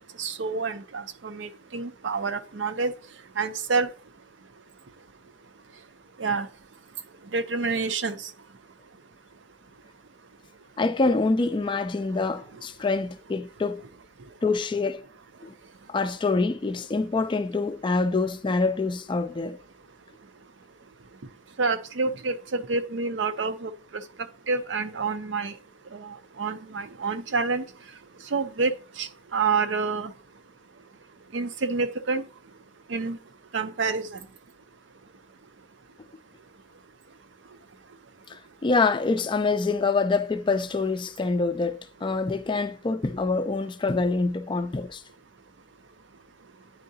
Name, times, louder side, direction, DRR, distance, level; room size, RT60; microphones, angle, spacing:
voice 1, 0.2-2.9 3.4-3.9 6.2-6.5 7.3-8.3 21.6-23.7 24.5-25.5 25.9-27.6 28.3-30.1 31.3-32.2 32.9-33.2 33.5-34.2, right 4 dB, 70° right, 0.6 m, -28 dB
voice 2, 10.8-13.8 14.4-15.0 15.4-15.5 15.9-19.6 38.3-45.0, left 3 dB, 25° left, 0.4 m, -26 dB
9.5 x 3.7 x 2.7 m
head